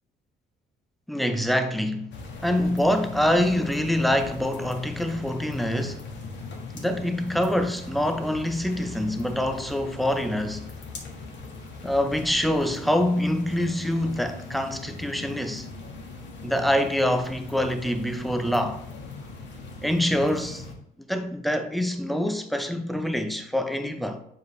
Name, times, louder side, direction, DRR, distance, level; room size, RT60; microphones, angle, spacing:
voice 1, 1.1-2.1 2.4-6.0 6.7-10.7 11.8-15.7 16.4-18.8 19.8-20.6 21.0-24.2, left 1 dB, ahead, 0.7 m, -25 dB
sound 1, 2.1-20.7, left 3 dB, 65° left, 1.5 m, -40 dB
7.4 x 4.7 x 3.2 m
cardioid pair, 90°, 20 cm